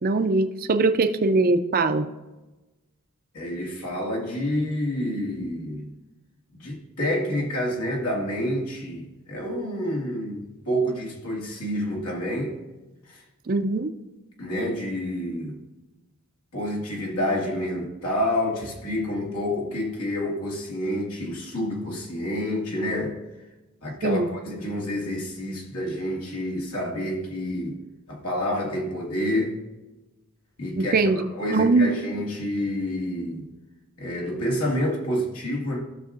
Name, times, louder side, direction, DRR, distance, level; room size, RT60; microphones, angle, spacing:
voice 1, 0.0-2.1 13.5-13.9 24.0-24.3 30.8-31.2 31.5-31.9, right 3 dB, 40° right, 0.5 m, -21 dB
voice 2, 3.3-5.9 6.5-12.6 13.1-13.2 14.4-15.6 16.5-23.2 23.8-27.8 28.1-29.6 30.6-33.5 34.0-35.8, left 1 dB, 75° left, 2.1 m, -28 dB
15.5 x 6.4 x 2.5 m
head